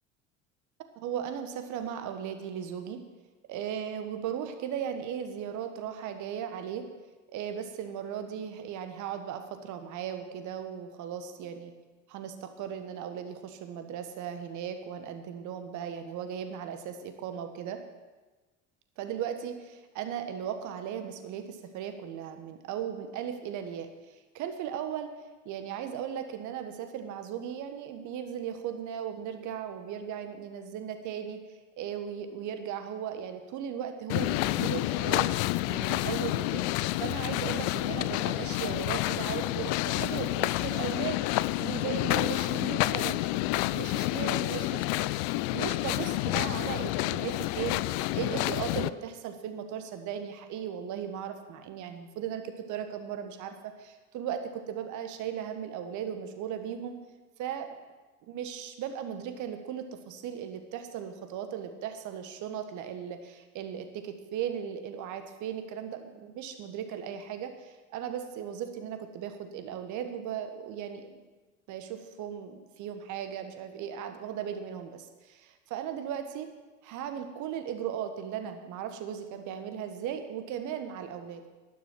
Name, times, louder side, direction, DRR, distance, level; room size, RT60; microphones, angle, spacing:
voice 1, 0.9-3.0 3.5-6.9 7.3-11.7 12.1-17.8 19.0-25.1 25.4-31.4 31.8-35.3 35.7-36.6 37.0-47.8 48.1-57.0 57.4-57.8 58.3-71.2 71.7-76.5 76.8-81.5, right 9 dB, 50° right, 7 dB, 1.5 m, -37 dB
Walking on beach sand, 34.1-48.9, left 19 dB, 50° left, 0.5 m, -29 dB
11.5 x 10.5 x 6.0 m, 1.2 s
figure-of-eight pair, 70°, 39 cm